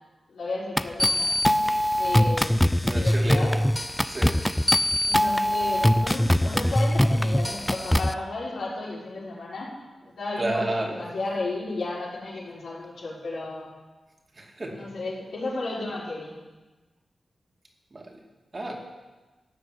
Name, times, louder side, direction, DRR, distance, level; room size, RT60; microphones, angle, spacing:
voice 1, 0.3-1.6 1.9-3.5 5.0-9.7 10.2-13.7 14.7-16.4, left 2 dB, 85° left, -6 dB, 5.2 m, -33 dB
sound 1, 0.8-8.1, equal, 10° left, 0.5 m, -22 dB
voice 2, 2.9-3.6 4.0-4.4 10.4-11.1 14.4-14.9 17.9-18.2 18.5-18.8, right 1 dB, 35° right, 1 dB, 2.5 m, -31 dB
13.5 x 7.3 x 9.5 m, 1.2 s
wide cardioid pair, 85°, 0 cm